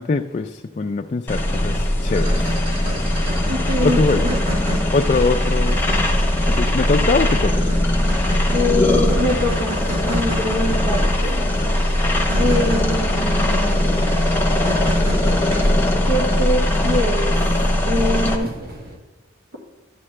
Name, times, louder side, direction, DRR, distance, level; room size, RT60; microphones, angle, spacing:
voice 1, 0.0-2.6 3.8-4.3 4.9-5.8 6.5-7.7 10.7-10.8, left 3 dB, 35° left, 5 dB, 0.3 m, -22 dB
sound 1, 1.3-18.4, left 1 dB, 10° left, 0.9 m, -20 dB
sound 2, 1.4-19.0, equal, 45° right, 1.4 m, -31 dB
sound 3, 2.1-17.6, equal, 30° right, 1.3 m, -31 dB
voice 2, 3.5-4.4 8.5-9.8 10.0-11.4 12.4-14.0 16.1-17.3 17.9-18.5, left 1 dB, 75° right, -2 dB, 1.5 m, -24 dB
12.0 x 8.5 x 3.2 m, 1.1 s
head